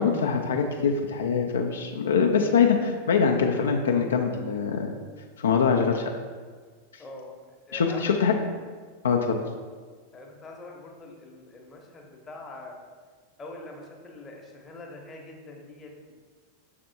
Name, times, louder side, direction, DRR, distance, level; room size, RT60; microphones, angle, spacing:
voice 1, 0.0-4.9 5.4-6.1 6.9-7.0 7.7-8.3 9.0-9.4, left 6 dB, 65° left, 2 dB, 0.3 m, -23 dB
voice 2, 7.0-7.4 7.7-8.2 10.1-12.7 13.4-16.1, left 2 dB, 20° left, 0 dB, 0.8 m, -43 dB
6.0 x 3.4 x 2.6 m, 1.5 s
figure-of-eight pair, 90°, 0 cm